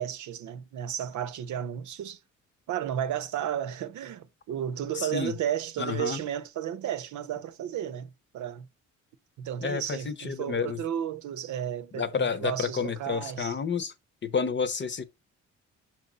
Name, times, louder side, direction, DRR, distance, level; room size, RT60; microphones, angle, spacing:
voice 1, 0.0-2.2 2.7-8.7 9.4-13.5, right 10 dB, 75° right, 0.8 m, -33 dB
voice 2, 4.9-5.4 5.8-6.2 9.6-10.8 11.9-13.9 14.2-15.1, left 6 dB, 40° left, 0.8 m, -30 dB
6.2 x 4.2 x 3.9 m
cardioid pair, 90°, 30 cm